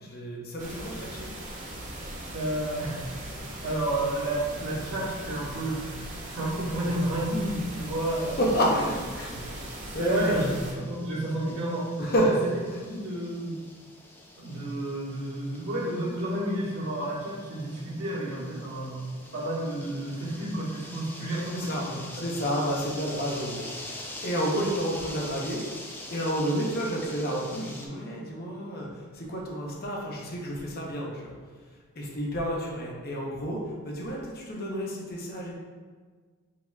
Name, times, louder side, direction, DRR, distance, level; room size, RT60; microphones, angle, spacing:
voice 1, 0.0-1.3 8.4-10.3 12.0-12.3 21.5-21.8 22.1-23.7 23.9-25.6 26.1-28.9 29.1-31.4 32.0-35.5, equal, 45° left, -2 dB, 0.8 m, -30 dB
sound 1, 0.6-10.7, right 1 dB, 35° right, 0.8 m, -39 dB
voice 2, 2.3-3.1 3.6-8.4 8.7-8.9 9.9-11.9 12.2-12.3 12.8-13.6 14.4-19.0 19.3-22.2, right 1 dB, 70° right, -8 dB, 1.5 m, -31 dB
sound 2, 8.1-27.9, left 1 dB, 10° left, 0.3 m, -44 dB
4.6 x 3.9 x 2.3 m, 1.5 s
head